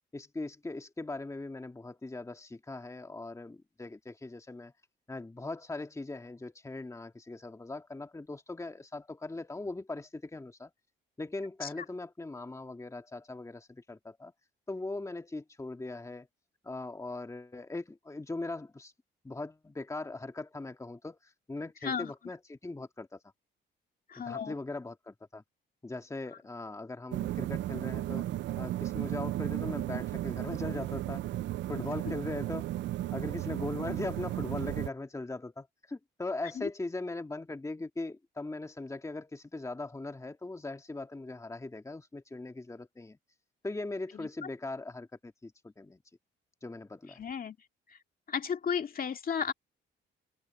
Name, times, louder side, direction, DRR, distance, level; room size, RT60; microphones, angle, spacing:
voice 1, 0.1-4.7 5.1-10.7 11.2-14.3 14.7-16.3 16.6-18.9 19.2-23.2 24.3-25.4 25.8-28.3 28.6-31.3 31.7-32.6 33.1-43.2 43.6-46.0 46.6-47.2, left 2 dB, 15° left, 1.9 m, -40 dB
voice 2, 21.8-22.1 24.1-24.5 36.6-36.7 44.1-44.3 47.2-47.6 47.9-48.0 48.3-49.5, left 7 dB, 45° left, 2.3 m, -34 dB
sound 1, 27.1-34.9, right 14 dB, 65° right, 0.4 m, -34 dB
open air
cardioid pair, 90°, 20 cm